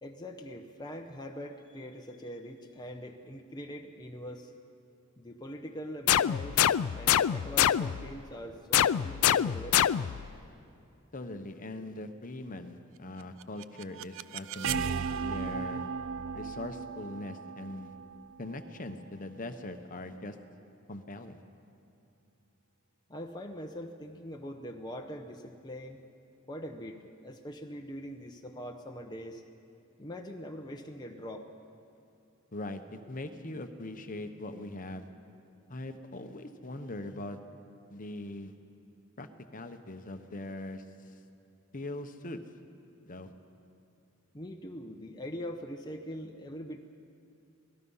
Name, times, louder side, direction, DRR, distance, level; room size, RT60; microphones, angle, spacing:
voice 1, 0.0-4.5 5.2-9.8 23.1-26.0 26.5-29.4 30.0-31.5 44.3-46.8, equal, 20° left, 2 dB, 0.9 m, -42 dB
sound 1, 6.1-8.1 8.7-10.3, left 10 dB, 85° left, 0.4 m, -25 dB
voice 2, 11.1-15.8 16.3-17.9 18.4-20.4 20.9-21.4 32.5-35.1 35.7-37.4 37.9-38.5 39.2-39.3 39.5-40.8 41.7-42.4 43.1-43.3, left 1 dB, 40° left, 7 dB, 1.0 m, -41 dB
sound 2, 13.2-19.1, right 6 dB, 60° right, 0.5 m, -36 dB
26.5 x 19.0 x 5.6 m, 2.5 s
head